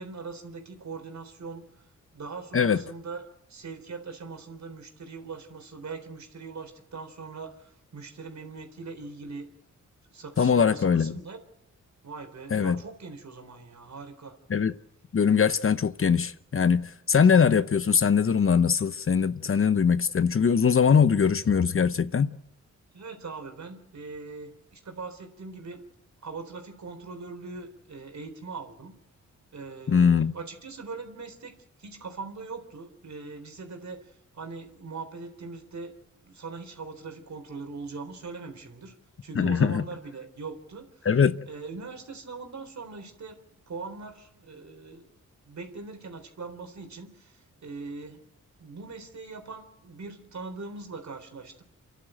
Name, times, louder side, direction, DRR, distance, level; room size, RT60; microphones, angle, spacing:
voice 1, 0.0-1.6 2.1-3.2 3.5-9.5 10.1-11.4 12.0-14.3 22.9-25.9 26.2-28.9 29.5-31.5 31.8-35.9 36.2-38.9 39.2-41.1 41.5-45.1 45.5-48.3 48.6-51.6, right 4 dB, 60° right, 3.9 m, -41 dB
voice 2, 10.4-11.2 12.5-12.8 14.5-14.7 15.1-22.4 29.9-30.3 39.4-39.8 41.0-41.4, left 6 dB, 45° left, 0.8 m, -22 dB
28.5 x 11.5 x 8.9 m
cardioid pair, 65°, 31 cm